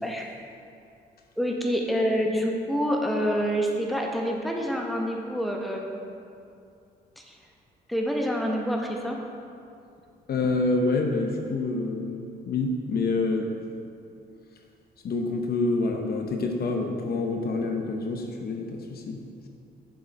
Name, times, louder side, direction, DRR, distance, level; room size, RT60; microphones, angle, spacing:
voice 1, 1.4-6.0 7.2-7.4 7.9-9.2, equal, ahead, 0 dB, 1.0 m, -27 dB
voice 2, 10.3-13.5 15.0-19.2, left 3 dB, 60° left, 3 dB, 0.8 m, -27 dB
6.9 x 6.3 x 4.1 m, 2.5 s
cardioid pair, 75°, 19 cm